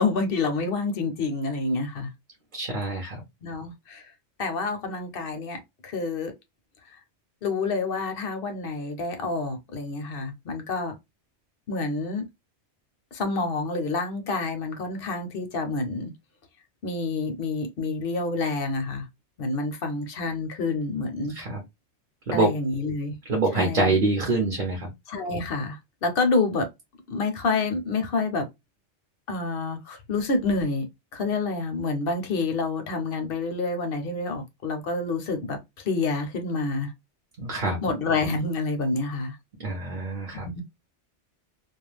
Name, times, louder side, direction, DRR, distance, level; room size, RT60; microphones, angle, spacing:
voice 1, 0.0-2.1 3.4-4.1 4.4-6.3 6.8-7.0 7.4-10.9 11.7-12.3 13.1-16.1 16.8-19.1 19.4-21.4 22.3-23.1 23.5-24.0 25.1-26.7 27.1-28.5 29.3-36.9 37.8-39.4 40.4-40.6, left 3 dB, 60° left, 0.8 m, -28 dB
voice 2, 2.5-3.2 21.3-21.6 22.3-22.5 23.3-24.9 37.4-37.8 39.6-40.5, right 3 dB, 50° right, 0.8 m, -25 dB
2.4 x 2.2 x 3.1 m
omnidirectional pair, 1.2 m